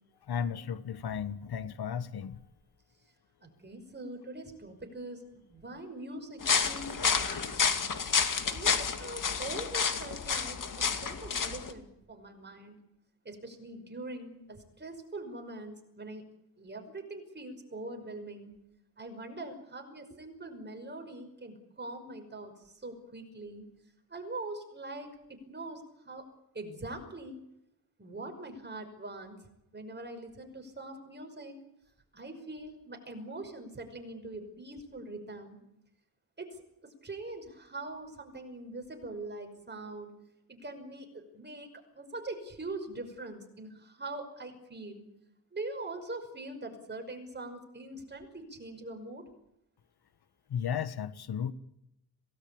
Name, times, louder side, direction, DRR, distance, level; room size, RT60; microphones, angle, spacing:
voice 1, 0.3-2.4 50.5-51.5, left 8 dB, 80° left, 13 dB, 1.5 m, -34 dB
voice 2, 3.4-7.6 8.5-12.8 13.3-16.2 16.6-18.5 19.0-23.7 24.1-25.1 25.5-26.2 26.5-27.4 28.0-29.4 29.7-31.6 32.1-35.6 36.4-36.6 37.0-40.1 40.5-41.7 41.9-45.0 45.5-49.2, right 2 dB, 30° right, 5 dB, 5.6 m, -43 dB
sound 1, 6.4-11.7, left 6 dB, 55° left, 2.5 m, -30 dB
27.0 x 18.5 x 8.8 m, 0.82 s
wide cardioid pair, 150°, 38 cm